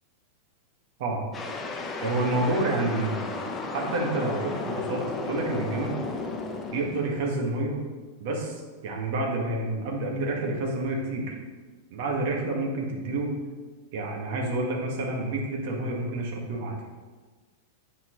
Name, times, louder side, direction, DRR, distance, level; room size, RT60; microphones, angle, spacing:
sound 1, 1.3-7.6, left 3 dB, 20° left, 1.0 m, -34 dB
voice 1, 2.0-3.3 3.7-6.0 6.7-7.8 8.2-11.4 11.9-13.3 13.9-16.8, right 2 dB, 60° right, 0 dB, 1.6 m, -29 dB
9.2 x 4.5 x 3.1 m, 1.4 s
hypercardioid pair, 105°, 0 cm